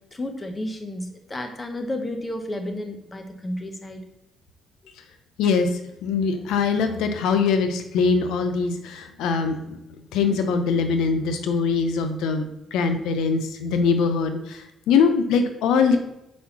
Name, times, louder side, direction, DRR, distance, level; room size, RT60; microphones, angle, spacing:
voice 1, 0.0-4.0, left 1 dB, 25° left, 5 dB, 1.1 m, -32 dB
voice 2, 5.4-9.8 10.1-16.0, left 5 dB, 90° left, 7 dB, 0.6 m, -22 dB
4.7 x 4.3 x 5.8 m, 0.85 s
cardioid pair, 90°, 0 cm